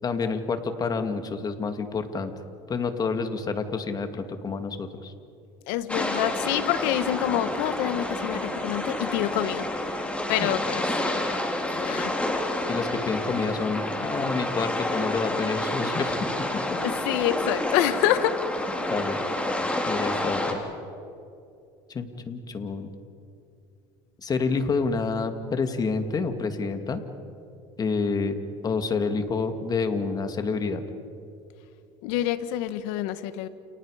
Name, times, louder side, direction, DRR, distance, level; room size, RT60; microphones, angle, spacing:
voice 1, 0.0-2.3 2.7-5.1 12.7-16.2 16.5-16.8 18.9-19.2 19.9-20.6 21.9-22.9 24.2-27.0 27.8-28.4 28.6-30.8, left 4 dB, 30° left, 7 dB, 2.3 m, -28 dB
voice 2, 5.7-9.7 9.9-10.8 11.6-12.1 16.8-18.4 32.0-33.5, left 13 dB, 80° left, 12 dB, 1.4 m, -27 dB
sound 1, 5.9-20.5, left 1 dB, 10° left, 3.8 m, -29 dB
29.5 x 29.5 x 5.0 m, 2.6 s
supercardioid pair, 110°, 13 cm